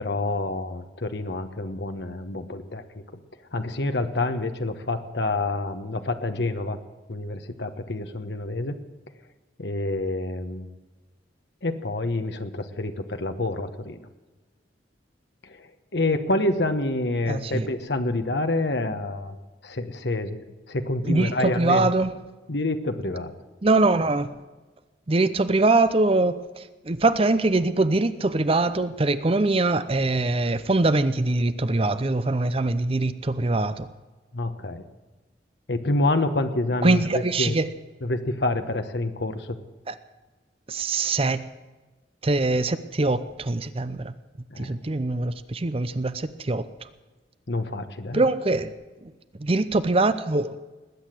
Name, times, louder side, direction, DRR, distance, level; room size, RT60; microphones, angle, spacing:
voice 1, 0.0-2.8 3.5-6.8 7.1-8.8 9.6-10.7 11.6-14.0 15.4-19.4 19.6-21.9 22.5-23.3 34.3-34.9 35.7-37.6 38.0-39.6 44.5-44.7 47.5-48.2, left 2 dB, 65° left, 8 dB, 1.2 m, -27 dB
voice 2, 17.3-17.7 21.1-22.1 23.6-24.3 25.1-33.9 36.8-37.7 39.9-40.0 40.7-41.4 42.2-44.1 44.6-46.6 48.1-48.7 49.0-49.1 49.4-50.6, right 2 dB, 30° right, 13 dB, 0.6 m, -23 dB
20.0 x 8.7 x 7.7 m, 1.2 s
head